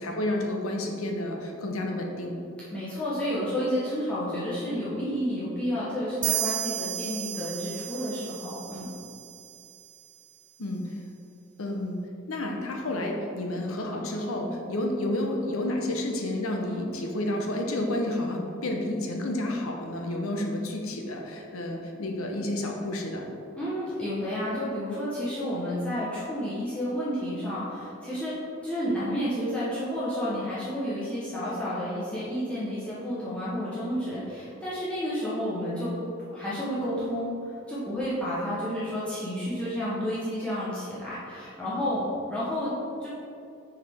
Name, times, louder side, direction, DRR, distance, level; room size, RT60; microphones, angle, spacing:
voice 1, 0.0-2.4 10.6-10.9 11.6-12.0 12.3-23.3, left 1 dB, 85° left, 1 dB, 0.8 m, -30 dB
voice 2, 2.7-8.9 16.6-16.8 23.5-28.3 28.6-35.9 36.3-37.3 37.7-42.7 43.0-43.1, equal, 5° left, -11 dB, 1.0 m, -31 dB
sound 1, 6.2-9.8, right 13 dB, 50° right, 0.3 m, -33 dB
6.4 x 4.9 x 3.5 m, 2.6 s
head